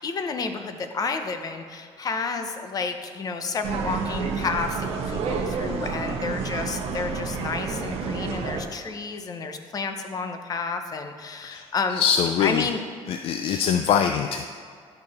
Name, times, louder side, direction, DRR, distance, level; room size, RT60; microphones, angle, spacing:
voice 1, 0.0-12.0 12.4-12.8 13.4-13.7, left 4 dB, 35° left, 6 dB, 0.7 m, -30 dB
sound 1, 3.6-8.6, right 5 dB, 70° right, 1.1 m, -29 dB
voice 2, 11.9-12.7 13.1-14.5, left 8 dB, 60° left, 7 dB, 0.4 m, -23 dB
11.0 x 6.6 x 4.2 m, 2.1 s
cardioid pair, 145°, 11 cm